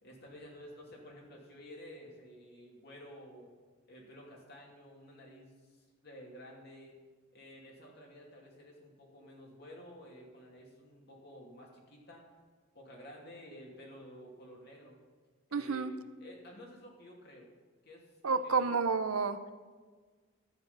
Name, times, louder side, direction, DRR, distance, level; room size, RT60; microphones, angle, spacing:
voice 1, 0.0-3.5 3.9-7.0 7.3-12.2 12.7-15.0 15.5-17.5 17.8-18.8, equal, 50° left, -1 dB, 2.7 m, -52 dB
voice 2, 15.5-15.9 18.2-19.4, right 4 dB, 85° right, 10 dB, 0.7 m, -30 dB
12.0 x 8.8 x 5.7 m, 1.4 s
head